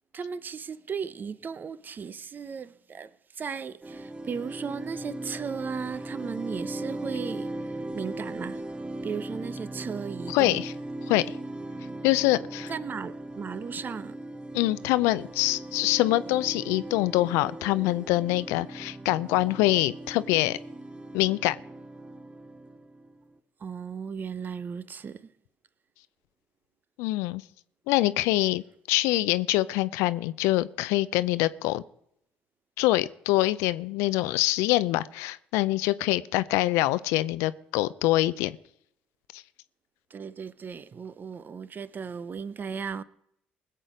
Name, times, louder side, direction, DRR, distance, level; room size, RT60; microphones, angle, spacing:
voice 1, 0.1-7.5 7.9-8.6 9.0-10.6 12.7-14.2 23.6-25.3 40.1-43.0, right 6 dB, 40° right, 0.7 m, -36 dB
sound 1, 3.8-23.4, right 1 dB, 20° right, 1.1 m, -38 dB
voice 2, 10.3-10.7 11.1-11.2 12.0-12.7 14.5-20.6 21.1-21.6 27.0-27.4 27.9-31.8 32.8-38.5 39.3-39.4, left 17 dB, 75° left, 0.5 m, -25 dB
20.5 x 7.7 x 5.0 m
hypercardioid pair, 55°, 5 cm